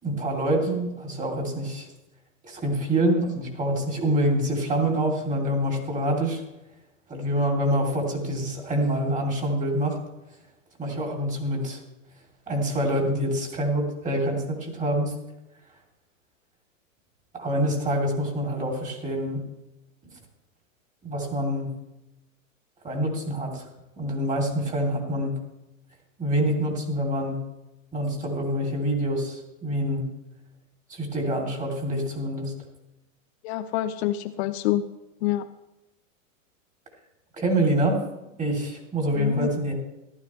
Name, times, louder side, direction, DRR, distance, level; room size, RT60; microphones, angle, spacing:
voice 1, 0.0-1.9 2.4-6.4 7.1-10.0 10.8-11.8 12.5-15.1 17.3-19.4 20.0-20.1 21.0-21.7 22.8-23.6 24.0-25.3 26.2-27.4 27.9-30.0 30.9-32.5 37.3-38.0 38.4-39.7, right 1 dB, 20° right, 0 dB, 3.0 m, -26 dB
voice 2, 33.4-34.9 35.2-35.5 39.1-39.5, left 13 dB, 55° left, 10 dB, 0.7 m, -27 dB
14.5 x 12.0 x 3.2 m, 0.97 s
hypercardioid pair, 125°, 40 cm